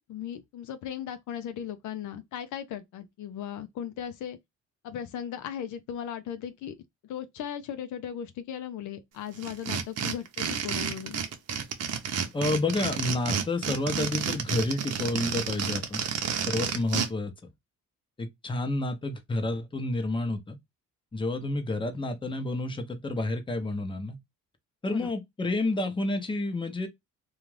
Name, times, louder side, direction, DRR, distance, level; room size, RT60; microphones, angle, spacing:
voice 1, 0.0-4.4 4.8-6.7 7.0-11.2 24.9-25.1, left 9 dB, 75° left, 0.5 m, -37 dB
sound 1, 9.4-17.1, right 7 dB, 60° right, 0.7 m, -30 dB
voice 2, 12.3-16.0 16.5-17.3 18.2-20.6 21.1-24.2 24.8-26.9, left 2 dB, 15° left, 0.7 m, -30 dB
2.4 x 2.4 x 3.1 m
cardioid pair, 90°, 30 cm